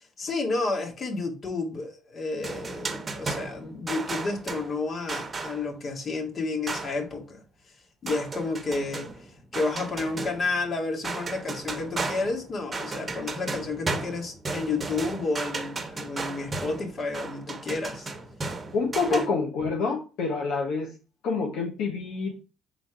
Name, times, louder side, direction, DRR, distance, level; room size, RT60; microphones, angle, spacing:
voice 1, 0.2-7.4 8.0-18.1 19.1-19.3, left 3 dB, 50° left, 1.8 m, -31 dB
sound 1, 2.4-5.8 6.7-7.1 8.1-10.7 11.0-19.3, right 3 dB, 30° right, 1.0 m, -35 dB
voice 2, 18.7-20.9 21.2-22.3, left 4 dB, 75° left, 1.0 m, -27 dB
5.1 x 3.8 x 4.9 m
supercardioid pair, 80°, 0 cm